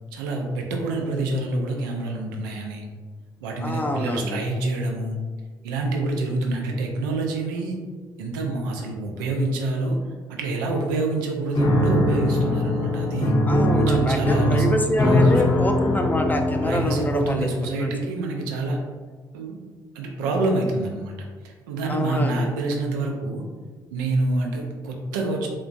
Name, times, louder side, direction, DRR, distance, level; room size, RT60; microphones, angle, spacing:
voice 1, 0.1-2.9 3.4-5.2 5.6-7.8 8.2-10.0 10.3-13.3 13.7-14.6 15.0-15.2 16.6-18.8 19.3-19.6 19.9-21.1 21.4-23.4 23.9-25.5, right 2 dB, 80° right, 1 dB, 0.5 m, -27 dB
voice 2, 3.6-4.4 13.4-17.9 21.9-22.5, left 1 dB, 15° left, 3 dB, 0.5 m, -26 dB
Piano, 11.5-17.5, left 1 dB, 45° left, 0.8 m, -21 dB
3.4 x 3.0 x 2.5 m, 1.5 s
hypercardioid pair, 45°, 11 cm